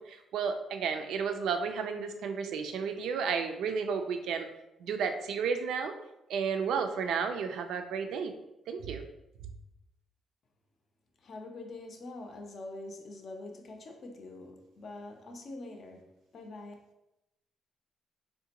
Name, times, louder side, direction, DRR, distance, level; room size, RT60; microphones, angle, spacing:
voice 1, 0.0-4.5 4.8-5.9 6.3-8.3 8.7-9.0, right 6 dB, 80° right, 0.3 m, -32 dB
voice 2, 11.2-16.7, left 2 dB, 55° left, 0.5 m, -45 dB
3.6 x 2.1 x 2.8 m
cardioid pair, 90°, 0 cm